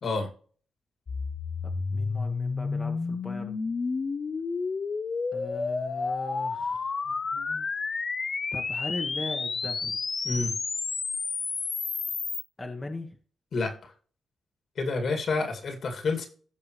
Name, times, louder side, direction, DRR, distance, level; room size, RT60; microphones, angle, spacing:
sound 1, 1.1-12.4, left 4 dB, 40° left, 0.7 m, -31 dB
voice 1, 1.6-3.6 5.3-6.9 8.5-10.0 12.6-13.2, left 2 dB, 20° left, 3 dB, 1.2 m, -38 dB
voice 2, 7.3-7.6 10.2-10.5 13.5-13.9 14.8-16.3, left 3 dB, 60° left, 4 dB, 2.4 m, -29 dB
15.5 x 5.3 x 3.2 m, 0.42 s
cardioid pair, 115°, 0 cm